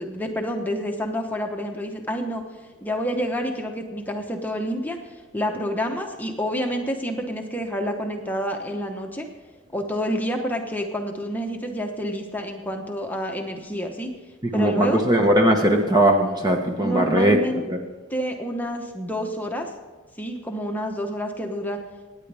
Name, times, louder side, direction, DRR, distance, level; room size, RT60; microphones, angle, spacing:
voice 1, 0.0-2.4 2.8-5.0 5.3-9.3 9.7-14.1 14.5-15.0 16.8-17.6 18.1-19.7 20.2-21.8, equal, 10° left, 2 dB, 1.0 m, -28 dB
voice 2, 14.4-17.4 17.7-17.8, right 1 dB, 20° right, 3 dB, 1.0 m, -19 dB
24.5 x 10.0 x 3.5 m, 1.3 s
head